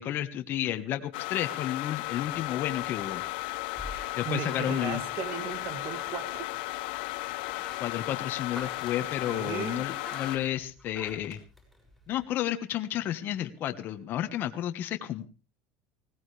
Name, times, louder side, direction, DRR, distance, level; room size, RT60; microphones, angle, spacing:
voice 1, 0.0-3.2 4.2-5.0 7.6-11.4 12.1-15.3, left 12 dB, 45° left, 1.4 m, -32 dB
sound 1, 1.1-10.4, left 21 dB, 80° left, 0.9 m, -35 dB
sound 2, 2.1-12.2, left 1 dB, ahead, 6.8 m, -49 dB
voice 2, 3.9-6.5 9.2-9.8, right 8 dB, 45° right, 1.9 m, -37 dB
20.0 x 17.0 x 3.4 m
cardioid pair, 145°, 5 cm